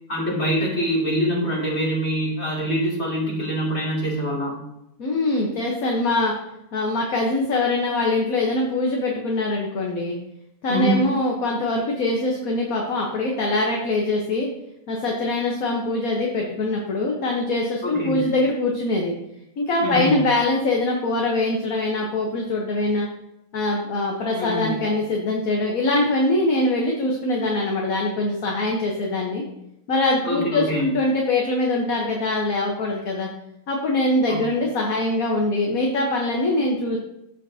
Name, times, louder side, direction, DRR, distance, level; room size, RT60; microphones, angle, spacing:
voice 1, 0.1-4.6 10.7-11.1 17.8-18.1 19.8-20.2 24.3-24.8 30.2-30.9 34.3-34.4, equal, 45° left, -4 dB, 2.9 m, -24 dB
voice 2, 5.0-6.3 6.7-10.2 10.6-14.5 14.9-19.1 19.6-23.1 23.5-29.4 29.9-33.3 33.7-37.0, left 2 dB, 65° left, -1 dB, 1.5 m, -23 dB
14.0 x 5.2 x 2.7 m, 0.82 s
omnidirectional pair, 1.6 m